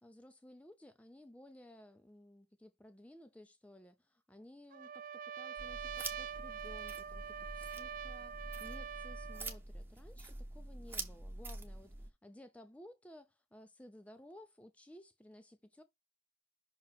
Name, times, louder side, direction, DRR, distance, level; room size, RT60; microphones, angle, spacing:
voice 1, 0.0-15.8, left 1 dB, 10° left, 0.5 m, -57 dB
Trumpet, 4.7-9.6, right 8 dB, 45° right, 0.3 m, -44 dB
sound 1, 5.6-12.1, right 2 dB, 10° right, 0.9 m, -46 dB
6.0 x 3.0 x 5.6 m
head